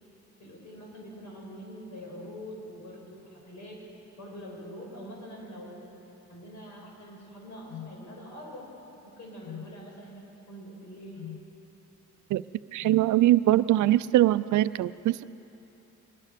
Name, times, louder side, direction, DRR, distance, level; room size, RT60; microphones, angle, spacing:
voice 1, 0.4-3.8 4.2-5.9 6.3-8.7 9.0-11.3, equal, 70° left, -1 dB, 6.2 m, -44 dB
sound 1, 7.7-8.0 9.4-9.7 11.2-11.5 12.8-13.1, left 10 dB, 85° left, 0.7 m, -41 dB
voice 2, 12.7-15.2, right 14 dB, 75° right, 15 dB, 0.6 m, -22 dB
23.0 x 20.0 x 6.8 m, 2.9 s
cardioid pair, 90°, 30 cm